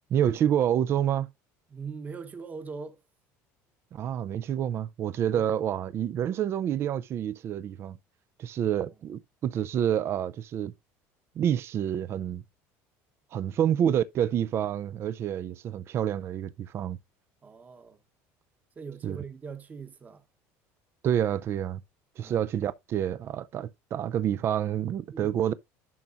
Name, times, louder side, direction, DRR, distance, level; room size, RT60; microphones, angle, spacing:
voice 1, 0.1-1.3 3.9-8.0 8.4-10.7 11.4-12.4 13.3-17.0 19.0-19.2 21.0-21.8 22.2-25.6, right 10 dB, 40° right, 0.4 m, -28 dB
voice 2, 1.7-3.0 5.3-5.5 13.5-13.7 17.4-18.0 18.8-20.2 22.2-22.5 25.1-25.4, right 5 dB, 25° right, 1.0 m, -41 dB
11.0 x 5.9 x 2.5 m
cardioid pair, 135°, 7 cm